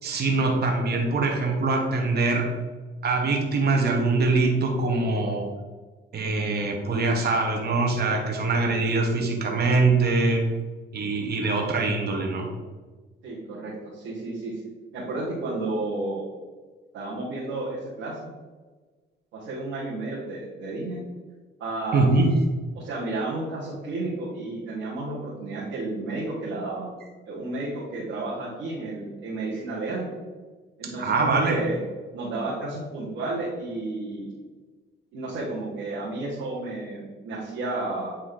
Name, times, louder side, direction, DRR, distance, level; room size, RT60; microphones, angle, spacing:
voice 1, 0.0-2.5 3.0-5.4 6.1-10.4 10.9-12.5 21.9-22.3 30.8-31.6, right 3 dB, 55° right, 1 dB, 1.3 m, -23 dB
voice 2, 13.2-14.5 14.9-16.3 16.9-18.3 19.3-21.0 21.6-22.1 22.7-26.9 27.3-30.1 30.8-31.8 32.1-34.3 35.1-38.1, right 2 dB, 90° right, -8 dB, 1.9 m, -32 dB
8.9 x 3.3 x 3.9 m, 1.3 s
cardioid pair, 90°, 20 cm